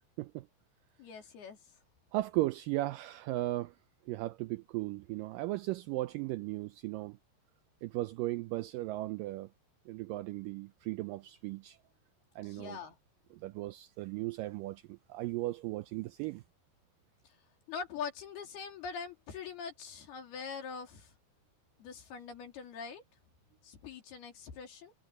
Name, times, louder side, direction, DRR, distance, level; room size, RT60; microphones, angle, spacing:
voice 1, 1.0-1.6 12.4-13.0 17.7-21.1 21.8-23.0 23.6-24.9, left 6 dB, 85° left, 5.2 m, -43 dB
voice 2, 2.1-3.7 4.1-7.2 7.8-9.5 9.9-11.8 12.4-12.8 13.4-16.4, right 18 dB, 80° right, 2.0 m, -36 dB
omnidirectional pair, 4.4 m